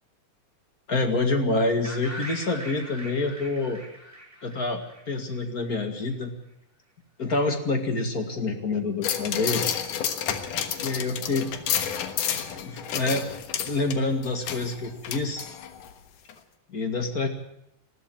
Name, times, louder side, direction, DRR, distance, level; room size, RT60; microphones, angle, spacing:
voice 1, 0.9-3.8 4.4-4.8 5.1-6.3 7.2-9.7 10.8-11.5 12.6-13.2 13.7-15.5 16.7-17.3, left 3 dB, 30° left, 5 dB, 2.1 m, -27 dB
sound 1, 1.8-5.7, right 1 dB, 5° right, 5.5 m, -41 dB
sound 2, 9.0-15.9 16.3-16.4, left 9 dB, 75° left, 2.9 m, -30 dB
20.0 x 14.5 x 9.2 m, 0.77 s
omnidirectional pair, 3.8 m